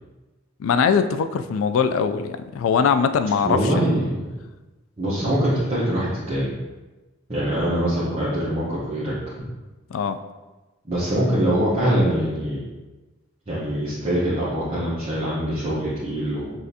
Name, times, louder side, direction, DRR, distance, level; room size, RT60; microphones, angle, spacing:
voice 1, 0.6-3.9 9.9-10.2, left 6 dB, 80° left, 11 dB, 0.3 m, -21 dB
voice 2, 3.4-4.3 5.0-6.5 7.3-9.1 10.8-12.6 13.5-16.5, right 1 dB, 30° right, -10 dB, 0.9 m, -23 dB
6.3 x 2.5 x 2.7 m, 1.1 s
head